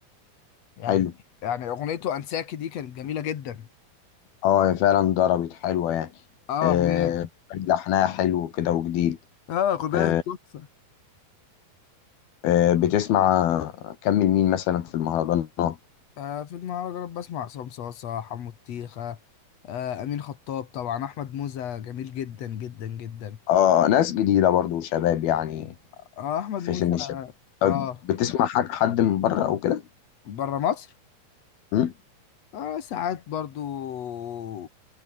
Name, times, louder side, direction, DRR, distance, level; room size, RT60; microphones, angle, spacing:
voice 1, 1.4-3.7 6.5-7.2 9.5-10.7 16.2-19.2 19.6-23.4 26.2-27.3 27.6-28.0 30.2-30.9 32.5-34.7, left 9 dB, 55° left, 2.4 m, -31 dB
voice 2, 4.4-6.1 6.6-9.2 9.9-10.2 12.4-15.8 23.5-25.7 26.7-27.1 27.6-29.8 31.7-31.9, left 11 dB, 80° left, 3.7 m, -22 dB
omnidirectional pair, 4.3 m